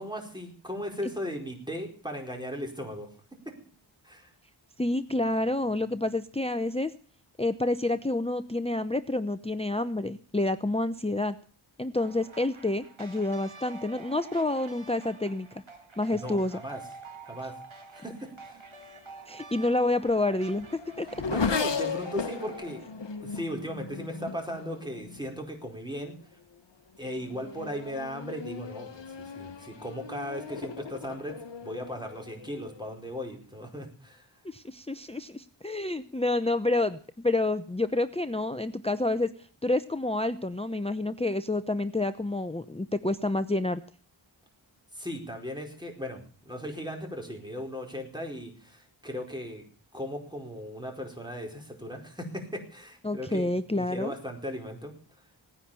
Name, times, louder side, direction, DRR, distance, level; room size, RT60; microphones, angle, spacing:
voice 1, 0.0-3.1 3.4-3.5 4.0-4.3 16.1-16.8 17.2-17.5 17.9-18.6 21.3-22.8 23.2-26.1 27.0-34.3 44.9-49.7 49.9-54.9, equal, 10° right, 2 dB, 4.7 m, -37 dB
voice 2, 4.8-6.9 7.4-11.4 11.8-15.5 16.0-16.6 19.3-21.1 34.4-39.3 39.6-43.8 53.0-54.1, left 2 dB, 10° left, 11 dB, 0.7 m, -28 dB
sound 1, 12.0-22.8, right 3 dB, 70° right, 2.1 m, -48 dB
Race car auto racing / Accelerating revving vroom, 19.5-25.4 26.2-26.6 27.0-32.9, left 5 dB, 60° left, 1.0 m, -36 dB
18.0 x 9.9 x 6.9 m, 0.44 s
wide cardioid pair, 45°, 49 cm